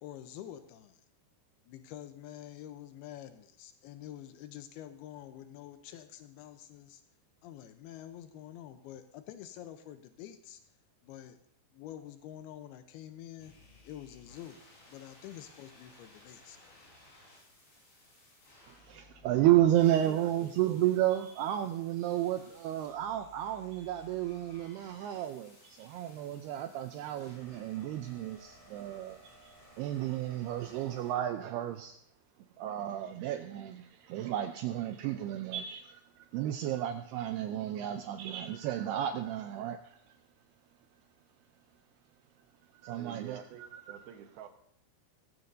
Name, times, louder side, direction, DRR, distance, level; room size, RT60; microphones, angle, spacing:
voice 1, 0.0-1.0 1.7-7.0 7.4-10.6 11.0-11.4 11.7-13.5 13.8-14.6 14.9-16.8, left 11 dB, 90° left, 8 dB, 2.3 m, -47 dB
sound 1, 13.4-31.1, left 2 dB, 60° left, 8.6 m, -59 dB
voice 2, 18.7-29.5 29.8-32.0 32.6-40.0 42.8-43.4 43.7-44.1, right 12 dB, 90° right, 6 dB, 2.3 m, -32 dB
voice 3, 20.0-20.8 43.0-44.5, right 9 dB, 70° right, 5 dB, 2.6 m, -48 dB
17.5 x 15.5 x 2.7 m, 0.69 s
omnidirectional pair, 5.3 m